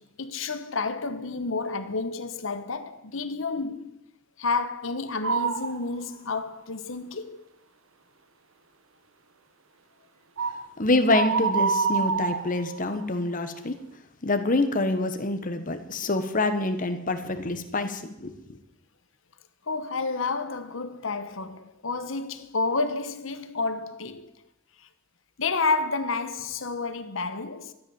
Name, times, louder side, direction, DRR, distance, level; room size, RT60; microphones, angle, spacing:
voice 1, 0.0-4.0 4.4-7.4 19.7-24.3 25.4-27.7, left 3 dB, 70° left, 1.2 m, -30 dB
sound 1, 5.2-5.8 6.3-6.4 10.4-10.7 11.1-13.0, right 5 dB, 85° right, 1.1 m, -26 dB
voice 2, 10.8-13.7 14.2-18.3, left 2 dB, 40° left, 1.4 m, -26 dB
13.5 x 10.5 x 7.1 m
head